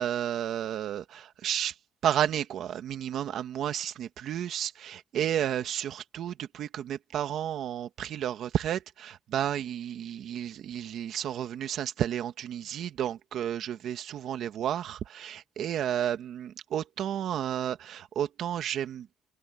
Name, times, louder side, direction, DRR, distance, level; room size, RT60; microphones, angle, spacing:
voice 1, 0.0-1.8 2.0-19.1, right 10 dB, 75° right, 2.0 m, -32 dB
cardioid pair, 90°, 0 cm